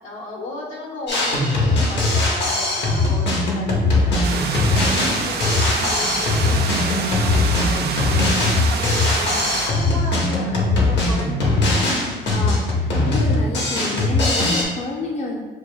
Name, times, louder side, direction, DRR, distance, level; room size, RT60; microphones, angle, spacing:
voice 1, 0.0-4.9 5.2-11.9, left 2 dB, 80° left, -3 dB, 1.3 m, -35 dB
Drum kit, 1.1-14.6, left 2 dB, 60° left, 1.1 m, -20 dB
sound 1, 4.2-9.7, right 4 dB, 55° right, 0.6 m, -27 dB
voice 2, 12.3-15.4, left 2 dB, 35° left, -1 dB, 0.6 m, -29 dB
6.6 x 2.5 x 2.3 m, 1.3 s
cardioid pair, 90°, 20 cm